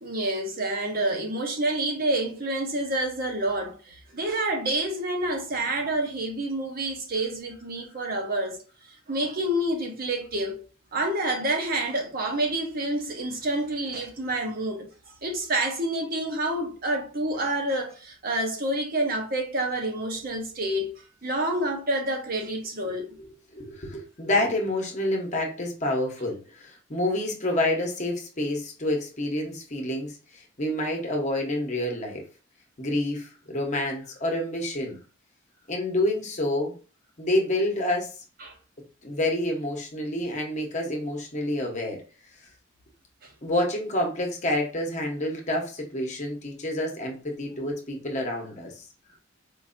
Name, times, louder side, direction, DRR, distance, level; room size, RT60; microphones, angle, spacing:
voice 1, 0.0-8.6 9.1-10.6 10.9-14.9 15.2-20.9 21.2-23.1 38.4-38.5 43.2-43.3, right 1 dB, 45° right, 0.8 m, -28 dB
voice 2, 23.5-32.2 32.8-35.0 35.7-36.7 37.2-38.1 39.0-42.0 43.4-48.8, left 1 dB, 35° left, 0.9 m, -28 dB
4.5 x 2.6 x 2.5 m
head